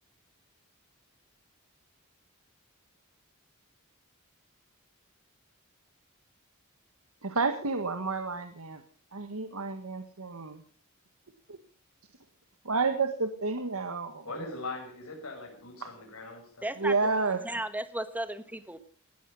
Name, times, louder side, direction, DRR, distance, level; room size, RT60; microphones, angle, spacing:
voice 1, 7.2-8.8 9.1-10.6 11.5-11.6 12.6-14.3 15.8-15.9 16.8-17.4, right 4 dB, 80° right, 7 dB, 1.6 m, -30 dB
voice 2, 14.2-16.7, left 2 dB, 80° left, 2 dB, 6.4 m, -40 dB
voice 3, 16.6-16.9 17.4-18.8, right 1 dB, 5° right, 11 dB, 1.4 m, -34 dB
19.0 x 14.0 x 5.5 m, 0.43 s
head